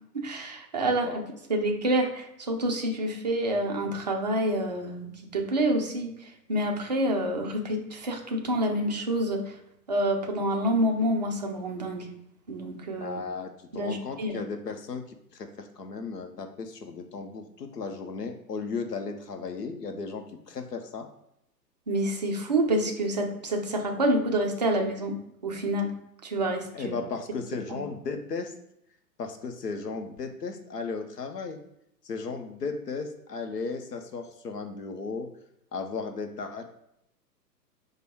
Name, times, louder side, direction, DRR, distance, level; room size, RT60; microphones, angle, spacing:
voice 1, 0.1-1.1 1.5-6.1 6.5-9.4 9.9-12.1 12.5-13.2 13.7-14.4 21.9-25.2 25.4-25.9 26.2-27.0, right 1 dB, 30° right, 2 dB, 0.4 m, -27 dB
voice 2, 0.7-1.2 13.0-15.0 15.3-21.1 26.7-28.5 29.2-31.6 32.0-35.3 35.7-36.6, left 4 dB, 70° left, 6 dB, 0.9 m, -35 dB
4.9 x 2.3 x 4.6 m, 0.77 s
figure-of-eight pair, 120°, 49 cm